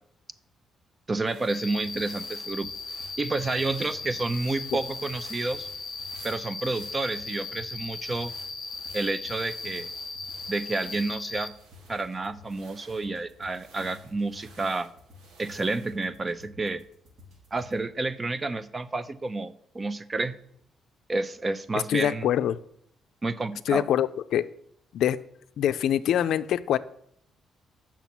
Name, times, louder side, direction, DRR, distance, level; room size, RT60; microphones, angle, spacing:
voice 1, 1.1-2.7 3.2-5.7 6.2-8.3 8.9-9.9 10.5-11.5 11.9-14.9 15.4-16.8 17.5-20.4 21.1-22.3 23.2-23.8, right 3 dB, 30° right, 14 dB, 0.6 m, -30 dB
sound 1, 1.2-16.1, right 3 dB, 90° right, 1.5 m, -54 dB
Cricket, 1.5-11.5, left 4 dB, 50° left, 0.7 m, -38 dB
sound 2, 1.7-17.8, left 3 dB, 60° right, 3.9 m, -53 dB
voice 2, 21.9-22.6 23.7-24.4 24.9-25.2 25.6-26.8, left 10 dB, 75° left, 12 dB, 0.4 m, -24 dB
7.1 x 6.0 x 6.0 m, 0.70 s
cardioid pair, 90°, 0 cm